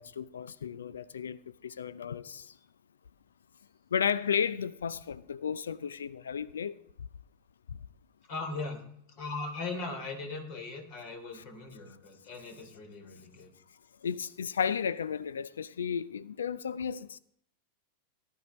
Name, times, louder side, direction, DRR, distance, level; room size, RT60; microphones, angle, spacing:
voice 1, 0.0-2.5 3.9-6.8 11.3-11.4 14.0-17.2, left 7 dB, 65° left, 0.4 m, -33 dB
voice 2, 8.3-8.8 9.2-13.5, left 3 dB, 45° left, 3.2 m, -39 dB
17.5 x 10.5 x 3.1 m
figure-of-eight pair, 90°, 0 cm